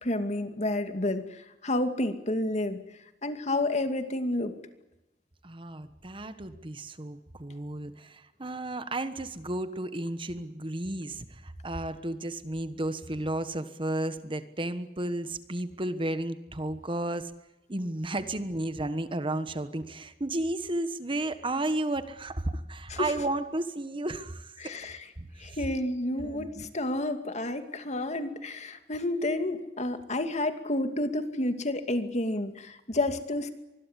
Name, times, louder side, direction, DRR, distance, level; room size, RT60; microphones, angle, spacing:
voice 1, 0.0-2.8 3.2-4.5 22.9-23.1 24.6-25.0 25.4-33.5, left 1 dB, 40° left, 8 dB, 2.5 m, -30 dB
voice 2, 5.4-17.3 17.7-24.8 25.2-25.6 26.1-26.7, right 1 dB, 30° right, 11 dB, 1.3 m, -33 dB
25.0 x 21.5 x 8.3 m, 0.95 s
head